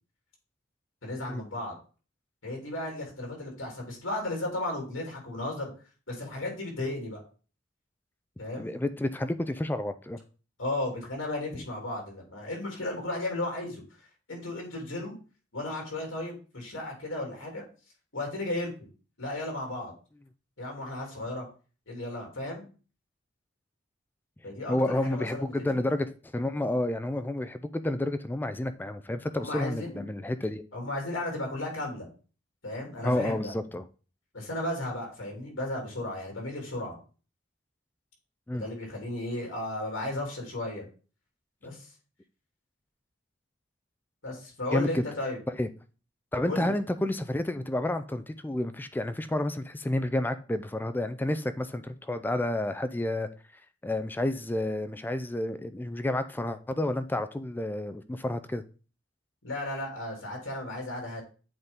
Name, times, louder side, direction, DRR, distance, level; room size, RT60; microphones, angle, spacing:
voice 1, 1.0-1.7 2.4-5.7 6.1-7.2 8.4-8.7 10.6-13.8 14.3-15.1 15.5-17.6 18.1-18.9 19.2-19.9 20.6-21.5 21.9-22.6 24.4-25.8 29.4-30.0 30.7-32.1 32.6-33.5 34.3-37.0 38.5-40.8 41.6-41.9 44.2-45.4 46.5-46.8 59.4-61.2, left 1 dB, 75° left, 0 dB, 2.8 m, -34 dB
voice 2, 8.6-10.2 24.7-30.6 33.0-33.8 38.5-38.6 44.7-45.0 45.6-45.7 46.3-53.3 53.8-58.6, left 1 dB, 10° left, 11 dB, 0.3 m, -30 dB
7.9 x 4.0 x 3.6 m, 0.36 s
head